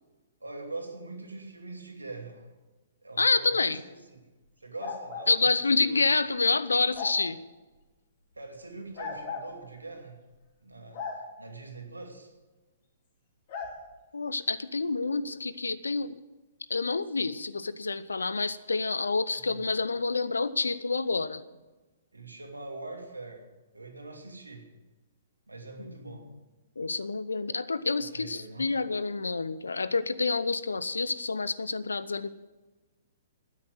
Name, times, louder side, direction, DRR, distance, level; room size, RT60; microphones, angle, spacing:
voice 1, 0.4-2.5 3.0-4.2 4.6-5.6 5.9-6.0 8.4-10.2 10.6-11.0 11.4-12.3 19.3-19.6 22.1-23.4 23.7-24.7 25.5-26.3 28.1-28.7, right 3 dB, 80° right, 3 dB, 2.6 m, -43 dB
voice 2, 3.2-3.8 5.3-7.4 14.1-16.2 16.7-21.4 25.8-26.4 26.8-32.3, left 4 dB, 75° left, 16 dB, 0.7 m, -28 dB
sound 1, 4.8-5.3 6.9-7.2 8.9-9.5 10.9-11.2 13.5-13.7, left 5 dB, 45° left, 3.3 m, -36 dB
12.5 x 10.0 x 7.9 m, 1.2 s
figure-of-eight pair, 115°, 0 cm